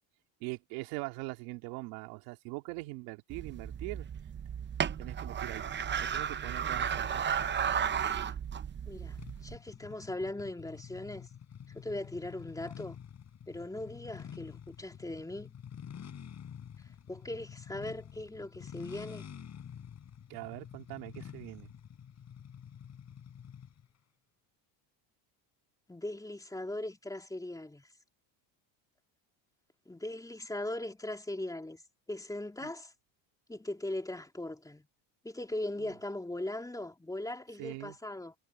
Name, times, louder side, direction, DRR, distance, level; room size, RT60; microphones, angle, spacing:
voice 1, 0.4-4.1 5.0-5.7 5.9-7.4 20.3-21.7 32.6-32.7 35.8-35.9 37.6-38.0, right 24 dB, 85° right, 2.9 m, -42 dB
sound 1, 3.3-9.6, right 8 dB, 25° right, 0.8 m, -34 dB
voice 2, 8.0-8.3 8.9-11.3 11.7-13.0 13.5-15.5 17.1-19.3 25.9-27.9 29.9-31.8 32.1-32.9 33.5-34.9 35.2-38.3, left 1 dB, 5° left, 3.3 m, -39 dB
sound 2, 9.2-23.9, left 8 dB, 35° left, 4.9 m, -48 dB
cardioid pair, 130°, 47 cm